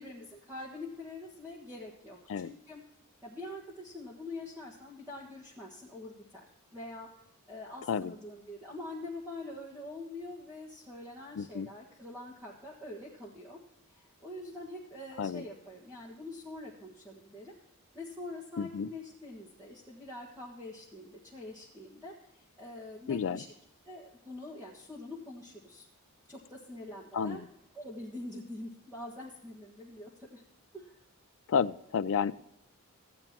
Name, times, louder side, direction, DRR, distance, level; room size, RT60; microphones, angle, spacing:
voice 1, 0.0-2.8 3.2-7.1 7.5-13.6 13.9-17.6 17.9-23.5 23.8-25.9 26.3-27.4 27.7-30.4 30.7-31.0, left 2 dB, 10° right, -6 dB, 1.5 m, -45 dB
voice 2, 11.4-11.7 15.2-15.4 18.6-18.9 23.1-23.4 27.1-27.5 31.5-32.3, left 6 dB, 60° left, 13 dB, 0.4 m, -31 dB
16.0 x 8.8 x 2.9 m, 0.85 s
head